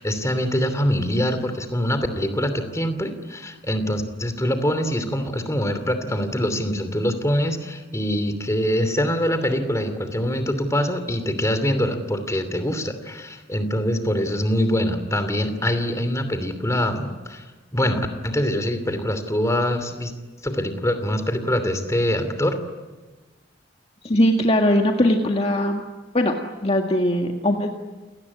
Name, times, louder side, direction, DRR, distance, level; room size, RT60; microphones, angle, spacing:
voice 1, 0.0-17.4 17.7-20.1 20.4-22.6, equal, 15° left, 9 dB, 2.8 m, -24 dB
voice 2, 24.0-25.8 26.1-26.4 26.6-27.7, left 1 dB, 35° left, 2 dB, 1.9 m, -20 dB
29.5 x 18.5 x 9.8 m, 1.2 s
head